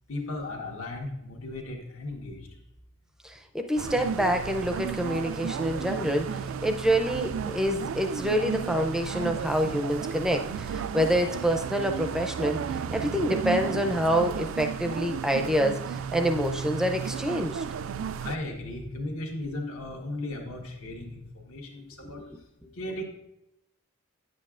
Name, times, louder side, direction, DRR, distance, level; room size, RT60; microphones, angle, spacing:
voice 1, 0.1-2.5 18.2-22.2 22.7-23.0, left 2 dB, 70° left, 1 dB, 1.3 m, -36 dB
voice 2, 3.2-12.6 12.9-17.6 22.0-22.2, equal, 5° right, 5 dB, 0.4 m, -27 dB
sound 1, 3.8-18.4, right 6 dB, 60° right, 0.3 m, -33 dB
9.7 x 7.6 x 2.4 m, 0.87 s
head